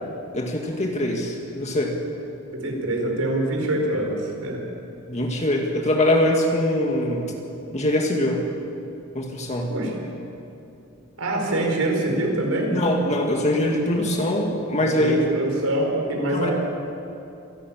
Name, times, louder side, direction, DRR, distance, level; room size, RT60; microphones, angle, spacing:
voice 1, 0.3-2.0 5.1-7.3 7.7-8.4 9.1-9.7 12.7-15.2 16.3-16.5, left 1 dB, 30° left, 1 dB, 2.1 m, -23 dB
voice 2, 2.5-4.6 9.7-9.9 11.2-12.8 13.9-14.0 14.8-16.5, right 1 dB, 80° right, 1 dB, 4.8 m, -25 dB
26.5 x 12.5 x 8.9 m, 2.8 s
head